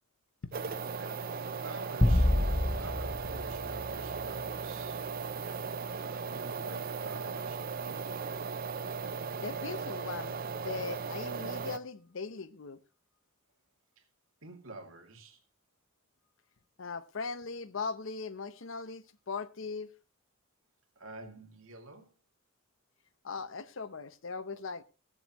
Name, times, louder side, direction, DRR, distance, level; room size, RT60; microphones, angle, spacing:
sound 1, 0.5-11.8, right 5 dB, 45° right, 0.5 m, -37 dB
voice 1, 1.6-5.0 6.1-8.1 14.0-14.1 14.4-15.4 21.0-22.1, right 2 dB, 75° right, 2.5 m, -48 dB
sound 2, 2.0-4.5, left 1 dB, 20° left, 0.6 m, -28 dB
voice 2, 9.4-12.8 16.8-19.9 23.2-24.8, left 4 dB, 65° left, 0.7 m, -39 dB
21.5 x 7.8 x 3.0 m
head